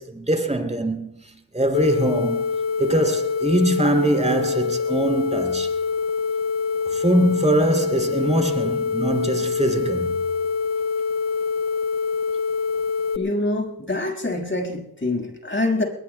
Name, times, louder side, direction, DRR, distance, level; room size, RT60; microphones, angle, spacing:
voice 1, 0.0-2.4 2.8-5.7 6.9-10.1, right 1 dB, 15° right, 3.2 m, -22 dB
sound 1, 1.7-13.2, left 5 dB, 80° left, 0.9 m, -25 dB
voice 2, 13.2-15.8, left 2 dB, 25° left, 6.4 m, -25 dB
22.0 x 21.0 x 2.4 m
supercardioid pair, 45°, 44 cm